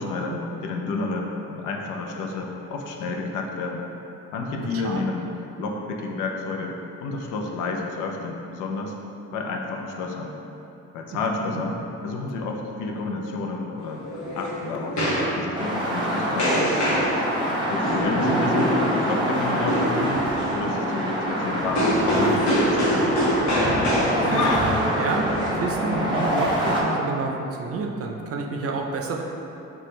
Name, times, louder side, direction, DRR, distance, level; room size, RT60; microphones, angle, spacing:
voice 1, 0.0-3.8 4.3-5.3 5.6-6.8 7.0-8.9 9.3-10.4 10.9-11.8 12.0-14.0 14.3-15.0 15.4-16.8 17.7-23.2 24.3-25.1, left 3 dB, 90° left, 1 dB, 0.5 m, -30 dB
voice 2, 4.6-5.0 11.5-11.6 18.2-18.5 24.2-24.5 25.0-29.2, right 3 dB, 50° right, 1 dB, 0.5 m, -29 dB
sound 1, 13.8-26.3, equal, 65° left, 1.0 m, -26 dB
sound 2, 15.5-26.8, equal, 15° right, 0.8 m, -25 dB
4.2 x 2.3 x 3.1 m, 3.0 s
cardioid pair, 90°, 30 cm